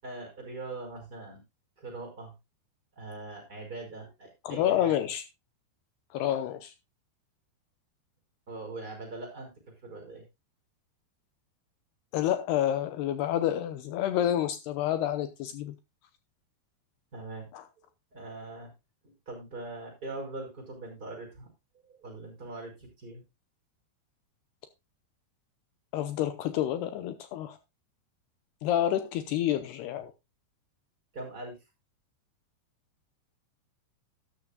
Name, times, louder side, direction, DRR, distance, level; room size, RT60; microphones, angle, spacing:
voice 1, 0.0-1.4 1.8-2.3 3.0-4.9 8.5-9.5 9.8-10.2 17.1-17.5 18.1-18.7 19.0-21.5 21.9-23.2 31.1-31.6, right 2 dB, 20° right, 5.6 m, -41 dB
voice 2, 4.4-5.2 6.1-6.7 12.1-15.8 17.5-17.7 25.9-27.6 28.6-30.1, left 11 dB, 80° left, 2.7 m, -29 dB
13.0 x 12.5 x 2.3 m
omnidirectional pair, 5.0 m